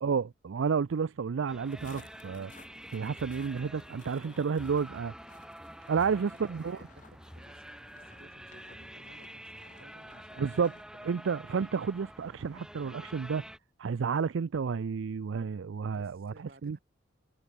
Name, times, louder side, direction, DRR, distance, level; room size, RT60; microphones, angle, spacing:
voice 1, 0.0-2.5 2.9-5.1 5.9-6.8 10.4-10.7 11.1-13.4 13.8-16.3 16.6-16.8, right 6 dB, 80° right, 0.4 m, -31 dB
sound 1, 1.5-13.6, equal, 5° right, 5.3 m, -48 dB
sound 2, 1.6-10.8, left 4 dB, 40° left, 3.1 m, -59 dB
voice 2, 6.0-10.6 10.9-11.2 15.9-16.8, right 1 dB, 50° right, 6.7 m, -57 dB
head